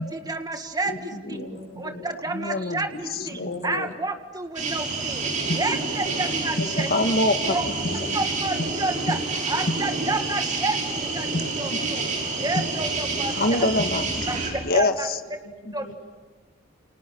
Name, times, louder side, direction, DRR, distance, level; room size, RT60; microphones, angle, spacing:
voice 1, 0.0-0.9 1.3-1.4 1.8-6.9 7.5-7.6 8.1-13.6 14.3-14.4 14.7-15.1 15.7-15.8, right 2 dB, 20° right, 5 dB, 1.8 m, -30 dB
voice 2, 0.8-2.0 2.9-3.8 5.6-5.8 6.0-6.2 6.6-6.7 7.4-7.5 7.9-8.2 11.7-11.8 14.3-14.5 15.4-15.9, left 1 dB, 70° left, -3 dB, 6.5 m, -38 dB
voice 3, 2.3-3.9 5.5-5.6 6.9-8.1 11.3-11.4 13.3-14.1 14.6-15.2, left 2 dB, 45° left, 7 dB, 1.7 m, -25 dB
sound 1, 4.6-14.5, right 3 dB, 40° right, 6.2 m, -28 dB
30.0 x 29.5 x 6.2 m, 1.3 s
head